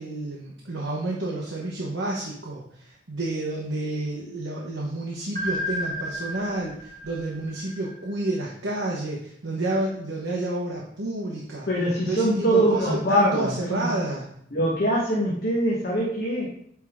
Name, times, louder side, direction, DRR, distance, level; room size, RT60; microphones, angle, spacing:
voice 1, 0.0-11.7 12.1-14.3, right 1 dB, 90° right, -4 dB, 1.2 m, -30 dB
sound 1, 5.4-8.3, equal, 40° right, 1.2 m, -33 dB
voice 2, 11.7-13.9 14.5-16.5, right 1 dB, 55° left, -5 dB, 1.2 m, -23 dB
9.1 x 3.7 x 3.7 m, 0.66 s
head